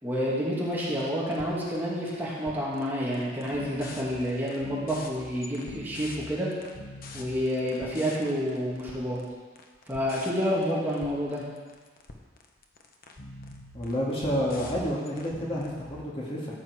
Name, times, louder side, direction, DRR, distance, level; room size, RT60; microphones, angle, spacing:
voice 1, 0.0-6.5 7.1-9.2 9.9-11.4, equal, 10° right, -7 dB, 2.6 m, -29 dB
sound 1, 0.7-0.8 1.0-2.2 2.5-2.9 3.1-16.0, left 2 dB, 50° left, 1.1 m, -44 dB
voice 2, 13.7-16.5, equal, 30° left, -5 dB, 2.1 m, -30 dB
14.0 x 7.9 x 4.8 m, 1.4 s
head